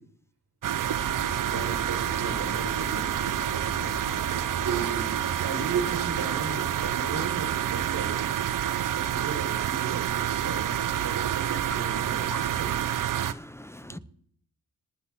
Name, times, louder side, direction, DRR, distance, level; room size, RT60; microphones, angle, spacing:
sound 1, 0.6-13.3, right 10 dB, 50° right, 0.8 m, -28 dB
sound 2, 0.8-12.9, left 4 dB, 75° left, 2.8 m, -47 dB
voice 1, 1.5-8.2 8.9-12.9, right 5 dB, 70° right, 4.7 m, -36 dB
voice 2, 13.2-14.0, left 1 dB, 5° left, 0.8 m, -41 dB
27.0 x 9.4 x 3.7 m
supercardioid pair, 40°, 40 cm